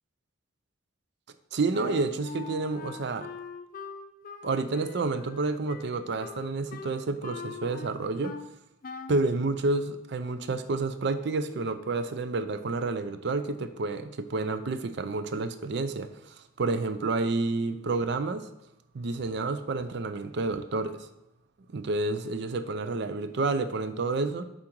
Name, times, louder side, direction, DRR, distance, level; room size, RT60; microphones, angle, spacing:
voice 1, 1.5-3.3 4.4-8.4 9.1-18.5 18.9-21.1 21.7-24.4, right 3 dB, 55° right, 0.4 m, -29 dB
Wind instrument woodwind instrument, 1.7-8.5 8.8-9.3, left 5 dB, 40° left, 0.4 m, -42 dB
7.4 x 3.8 x 4.5 m
head